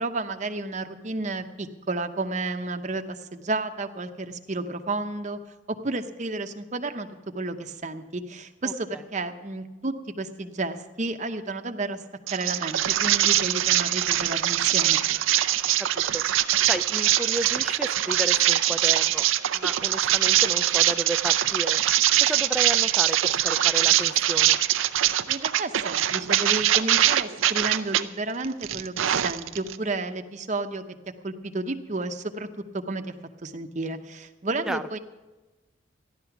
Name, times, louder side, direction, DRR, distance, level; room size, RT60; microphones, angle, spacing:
voice 1, 0.0-5.4 5.7-7.1 7.3-12.0 12.3-15.0 25.3-30.8 31.2-32.5 32.7-33.1 33.4-35.0, right 2 dB, 40° right, 7 dB, 0.8 m, -31 dB
voice 2, 8.6-9.0 15.8-16.2 16.7-19.3 19.5-21.8 22.2-24.6 34.7-34.8, right 1 dB, 5° right, 6 dB, 0.4 m, -32 dB
sound 1, 12.3-28.0 28.4-29.8, right 12 dB, 90° right, 0.5 m, -23 dB
14.5 x 11.0 x 5.9 m, 1.2 s
head